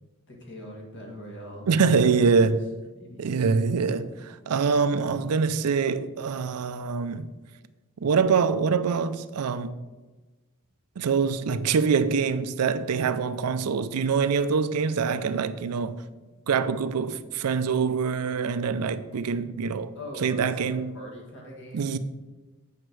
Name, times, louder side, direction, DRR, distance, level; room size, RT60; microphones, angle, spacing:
voice 1, 0.3-1.7 2.0-2.1 2.9-3.2 20.0-22.0, equal, 55° left, 1.9 m, -42 dB
voice 2, 1.7-2.7 3.2-7.3 8.0-9.8 11.0-16.0 16.5-19.9 20.2-20.9 21.7-22.0, right 5 dB, 80° right, 0.5 m, -24 dB
8.0 x 5.5 x 4.6 m
head